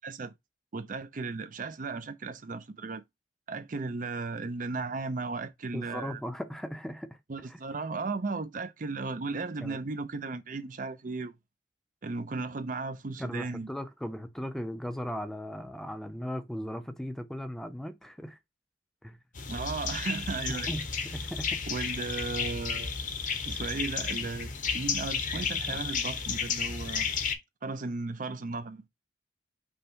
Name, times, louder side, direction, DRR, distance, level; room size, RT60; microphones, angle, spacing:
voice 1, 0.0-0.3 0.7-3.0 3.5-6.2 7.3-11.4 12.0-13.7 19.5-20.7 21.7-23.0 23.4-27.1 27.6-28.8, right 3 dB, 50° right, 0.5 m, -35 dB
voice 2, 5.7-7.2 7.5-7.6 9.6-9.8 13.2-18.4 19.0-19.2 20.5-20.9 21.1-21.6, equal, ahead, 0.5 m, -37 dB
sound 1, 19.4-27.4, left 5 dB, 45° left, 0.8 m, -32 dB
5.4 x 2.2 x 4.5 m
head